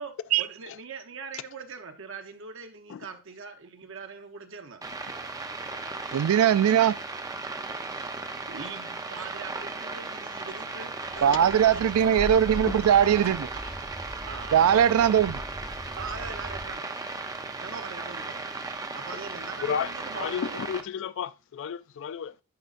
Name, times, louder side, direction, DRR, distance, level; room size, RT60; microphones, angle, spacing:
voice 1, 0.0-4.8 8.5-12.2 14.3-15.0 16.0-16.8 17.6-18.5 18.9-20.6, right 5 dB, 60° right, 0.8 m, -41 dB
sound 1, 4.8-20.8, right 3 dB, 15° right, 0.6 m, -36 dB
voice 2, 6.1-7.0 11.2-13.5 14.5-15.4, right 9 dB, 85° right, 0.3 m, -20 dB
sound 2, 11.0-16.7, equal, 10° left, 1.0 m, -40 dB
voice 3, 19.6-19.9 20.2-22.4, left 7 dB, 60° left, 0.3 m, -33 dB
10.5 x 5.1 x 2.5 m
head